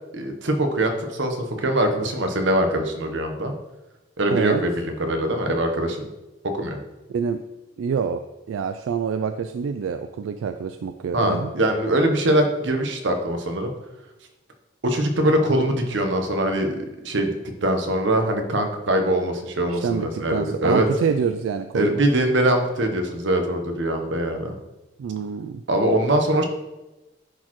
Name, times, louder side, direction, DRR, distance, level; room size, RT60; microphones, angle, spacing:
voice 1, 0.1-3.5 4.2-6.1 6.5-6.8 11.1-13.7 14.8-17.3 17.6-20.9 21.7-24.6 25.7-26.4, right 1 dB, 70° right, 5 dB, 0.9 m, -22 dB
voice 2, 4.3-4.6 7.1-7.4 7.8-8.2 8.5-11.5 19.7-22.0 25.0-25.6, right 6 dB, 90° right, 8 dB, 0.3 m, -26 dB
10.0 x 4.2 x 3.1 m, 1.0 s
head